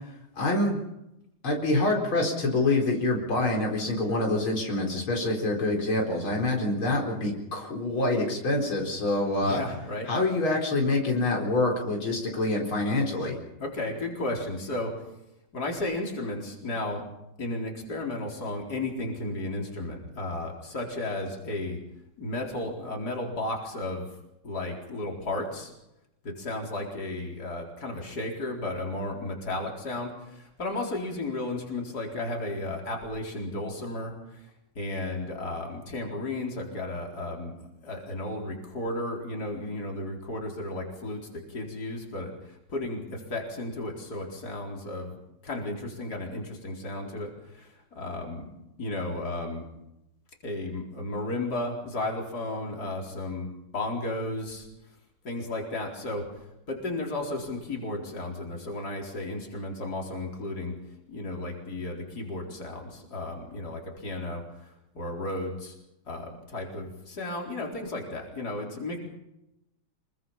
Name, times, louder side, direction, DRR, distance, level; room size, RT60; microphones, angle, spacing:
voice 1, 0.4-0.8 1.4-9.6 10.1-13.4, left 2 dB, 85° left, 0 dB, 5.1 m, -26 dB
voice 2, 9.4-10.1 13.6-15.0 15.5-17.0 17.4-21.8 22.2-24.1 24.4-25.7 26.2-34.5 34.7-37.5 37.8-45.2 45.4-48.5 48.8-49.7 50.4-54.7 55.2-56.3 56.7-60.8 61.1-65.8 66.0-69.0, left 2 dB, 50° left, 0 dB, 4.8 m, -34 dB
26.5 x 23.0 x 5.7 m, 0.87 s
omnidirectional pair, 2.2 m